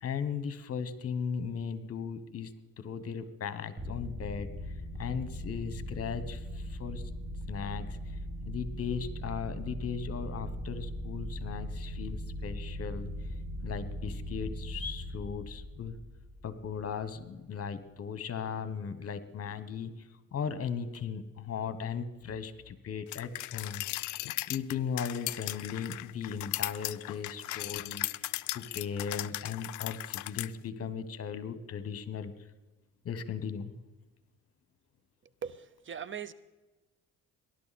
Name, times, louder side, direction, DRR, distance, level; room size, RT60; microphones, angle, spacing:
voice 1, 0.0-4.5 5.0-7.1 7.5-8.2 8.5-13.1 13.6-16.0 16.4-23.8 24.5-32.3 33.0-33.8, left 6 dB, 50° left, 13 dB, 1.3 m, -37 dB
sound 1, 3.8-17.1, equal, 25° right, 2.0 m, -39 dB
sound 2, 23.1-30.5, left 17 dB, 75° left, 0.4 m, -37 dB
voice 2, 35.4-36.3, right 7 dB, 40° right, 17 dB, 0.7 m, -40 dB
19.0 x 11.5 x 4.2 m, 1.1 s
cardioid pair, 90°, 30 cm